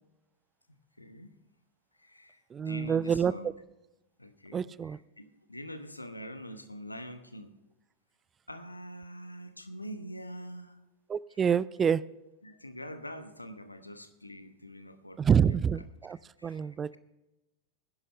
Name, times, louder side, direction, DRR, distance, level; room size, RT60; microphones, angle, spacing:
voice 1, 0.7-1.3 1.9-3.5 4.2-7.5 8.5-10.8 12.4-15.6 16.1-17.0, equal, 85° left, 9 dB, 1.1 m, -45 dB
voice 2, 2.5-3.3 4.5-5.0 11.1-12.0 15.2-17.0, right 7 dB, 20° right, 20 dB, 0.3 m, -27 dB
19.5 x 11.0 x 3.2 m, 0.97 s
figure-of-eight pair, 90°, 0 cm